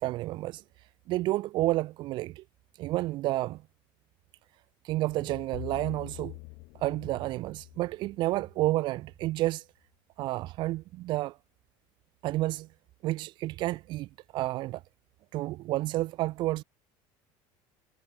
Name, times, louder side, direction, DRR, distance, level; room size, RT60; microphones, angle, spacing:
voice 1, 0.0-0.6 1.1-2.4 2.8-3.6 4.8-6.4 6.8-9.6 10.2-11.4 12.2-12.7 13.0-14.1 14.3-14.8 15.3-16.6, right 17 dB, 45° right, 1.0 m, -30 dB
sound 1, 5.1-9.2, left 31 dB, 65° left, 4.2 m, -46 dB
cardioid pair, 175°, 11 cm